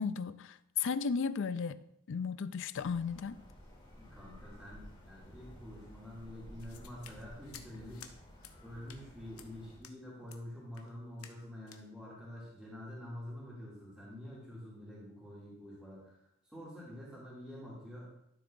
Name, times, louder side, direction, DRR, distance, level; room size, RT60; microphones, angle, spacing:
voice 1, 0.0-1.8 2.1-3.4, left 5 dB, 60° left, 0.4 m, -34 dB
sound 1, 2.8-9.8, equal, 25° left, 2.8 m, -54 dB
voice 2, 4.0-8.1 8.6-18.1, left 1 dB, 5° right, 2.5 m, -47 dB
sound 2, 6.6-8.1 8.4-8.6 8.9-9.0 9.4-9.5 9.8-10.0 10.3-10.4 10.7-10.9 11.2-11.4 11.7-11.8, left 8 dB, 85° left, 0.8 m, -54 dB
12.5 x 6.9 x 2.6 m
head